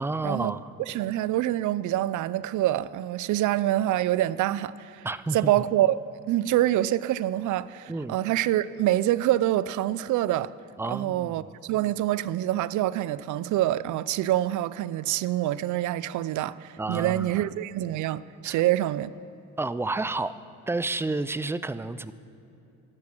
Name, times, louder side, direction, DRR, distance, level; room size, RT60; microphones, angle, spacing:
voice 1, 0.0-0.7 5.0-5.6 7.9-8.2 10.8-11.5 16.8-17.4 18.4-18.6 19.6-20.4 20.7-22.1, right 2 dB, 10° right, 0.4 m, -30 dB
voice 2, 0.9-5.1 5.3-10.5 10.8-19.1, right 14 dB, 75° right, 0.5 m, -26 dB
13.5 x 12.5 x 6.2 m
cardioid pair, 90°, 30 cm